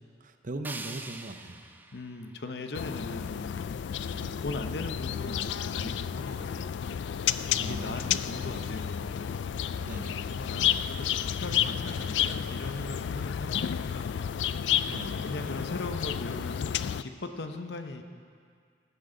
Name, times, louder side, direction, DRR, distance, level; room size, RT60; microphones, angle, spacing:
voice 1, 0.2-1.7 4.1-4.4 7.5-8.2 9.8-10.3 14.9-15.3, right 2 dB, 50° right, 7 dB, 0.7 m, -40 dB
sound 1, 0.6-3.6, right 3 dB, 10° right, 0.4 m, -45 dB
voice 2, 1.9-3.4 4.4-6.7 7.6-9.2 10.3-14.1 15.2-18.0, left 2 dB, 70° left, 6 dB, 0.8 m, -39 dB
sound 2, 2.7-17.0, left 9 dB, 85° left, 0.3 m, -31 dB
16.0 x 11.5 x 3.9 m, 2.2 s
head